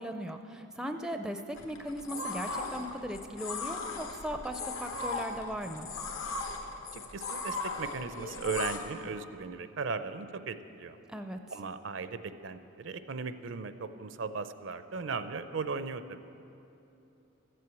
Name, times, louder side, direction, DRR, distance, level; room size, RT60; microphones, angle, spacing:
voice 1, 0.0-5.9 11.1-11.4, equal, 5° right, 6 dB, 0.4 m, -38 dB
sound 1, 1.6-8.8, left 3 dB, 75° left, 1.3 m, -38 dB
voice 2, 6.9-11.0 11.5-16.2, right 4 dB, 65° right, 11 dB, 0.5 m, -37 dB
14.0 x 7.7 x 8.3 m, 2.9 s
head